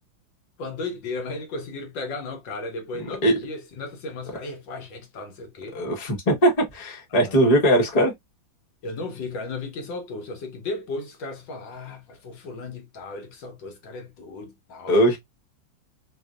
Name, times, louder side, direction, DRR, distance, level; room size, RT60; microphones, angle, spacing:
voice 1, 0.6-5.8 7.2-7.5 8.8-15.0, left 3 dB, 75° left, 1.5 m, -35 dB
voice 2, 3.0-3.4 5.7-8.1 14.9-15.2, right 1 dB, 30° left, 0.9 m, -20 dB
3.3 x 2.4 x 2.3 m
omnidirectional pair, 2.1 m